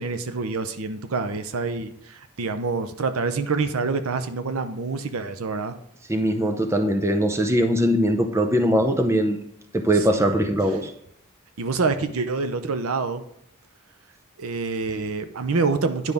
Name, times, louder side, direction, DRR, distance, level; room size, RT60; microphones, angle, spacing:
voice 1, 0.0-5.8 10.1-10.3 11.6-13.2 14.4-16.1, right 4 dB, 80° right, 9 dB, 0.7 m, -26 dB
voice 2, 6.1-9.4 9.7-10.9, equal, 15° right, 6 dB, 0.6 m, -21 dB
9.8 x 5.4 x 3.5 m, 0.73 s
head